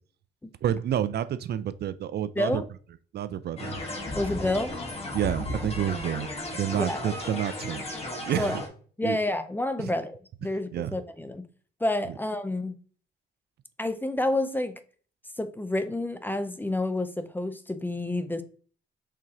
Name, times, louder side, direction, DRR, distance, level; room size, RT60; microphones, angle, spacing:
voice 1, 0.6-2.6 3.1-3.8 5.1-7.9 8.2-8.6 9.0-9.2 9.8-9.9 10.7-11.0, right 10 dB, 55° right, 0.4 m, -29 dB
sound 1, 3.6-8.7, left 1 dB, 30° left, 1.4 m, -34 dB
voice 2, 4.1-4.7 6.7-7.0 8.4-8.6 9.0-11.4 11.8-12.8 13.8-14.8 15.4-18.4, left 1 dB, 10° left, 0.5 m, -29 dB
4.9 x 3.5 x 2.8 m
cardioid pair, 90°, 20 cm